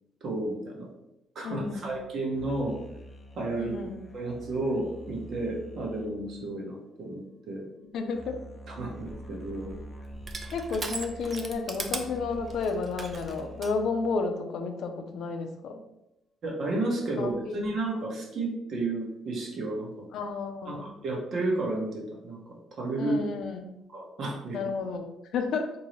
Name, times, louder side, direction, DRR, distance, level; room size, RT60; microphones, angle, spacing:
voice 1, 0.2-0.9 1.3-2.8 3.4-3.8 4.1-7.7 8.7-9.7 16.4-20.1 20.7-22.4 22.8-23.1 23.9-24.6, right 2 dB, 55° right, -1 dB, 0.9 m, -32 dB
voice 2, 1.4-1.9 3.6-4.0 7.9-8.4 10.5-15.8 17.2-17.6 20.1-20.9 23.0-23.7 24.5-25.7, left 4 dB, 70° left, 5 dB, 0.5 m, -32 dB
sound 1, 2.3-7.3 8.1-14.1, equal, 20° left, 0.5 m, -46 dB
Crushing, 8.9-13.8, right 3 dB, 30° right, 0.4 m, -39 dB
3.9 x 2.6 x 3.1 m, 0.88 s
cardioid pair, 125°, 0 cm